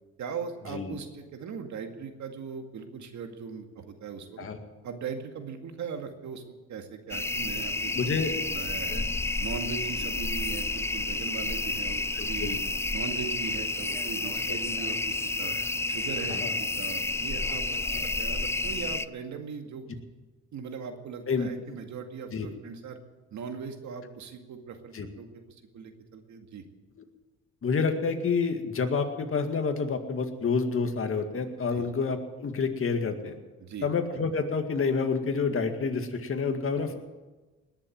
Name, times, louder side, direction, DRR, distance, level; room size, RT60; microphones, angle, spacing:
voice 1, 0.2-4.5 4.8-6.4 6.7-9.0 9.4-12.6 12.9-15.5 15.9-20.0 20.5-23.0 23.3-25.4 25.7-26.6 31.7-31.9 33.6-33.9 36.8-36.9, right 6 dB, 70° right, 5 dB, 2.1 m, -39 dB
sound 1, 7.1-19.0, left 2 dB, 10° left, 0.4 m, -30 dB
voice 2, 7.9-8.3 8.9-9.0 12.2-12.6 14.5-14.6 16.3-16.5 17.9-18.1 21.3-21.8 22.3-22.5 24.9-25.1 27.6-33.4 33.8-37.0, left 5 dB, 45° left, 6 dB, 2.1 m, -28 dB
20.0 x 7.4 x 9.3 m, 1.2 s
cardioid pair, 90°, 30 cm